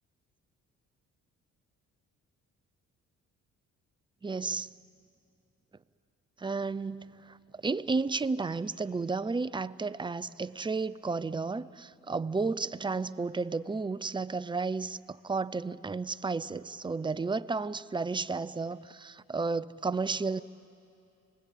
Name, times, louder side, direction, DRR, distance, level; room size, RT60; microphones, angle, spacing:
voice 1, 4.2-4.7 6.4-20.4, right 4 dB, 15° right, 0.5 m, -32 dB
29.0 x 20.5 x 8.4 m
cardioid pair, 90°, 30 cm